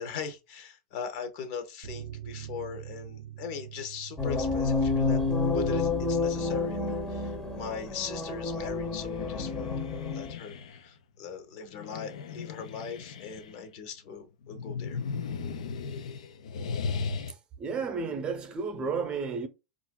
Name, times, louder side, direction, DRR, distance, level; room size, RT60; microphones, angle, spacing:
voice 1, 0.0-9.7 10.1-15.0, left 6 dB, 60° left, 0.9 m, -40 dB
sound 1, 1.8-8.9 9.2-9.3 9.6-9.7, right 11 dB, 75° right, 0.4 m, -47 dB
sound 2, 4.2-10.3, left 3 dB, 20° left, 0.7 m, -29 dB
sound 3, 8.5-10.8 11.7-13.7 14.4-17.3, left 5 dB, 85° left, 0.5 m, -37 dB
voice 2, 17.6-19.5, right 5 dB, 30° right, 0.7 m, -32 dB
4.2 x 2.5 x 2.2 m
hypercardioid pair, 115°, 3 cm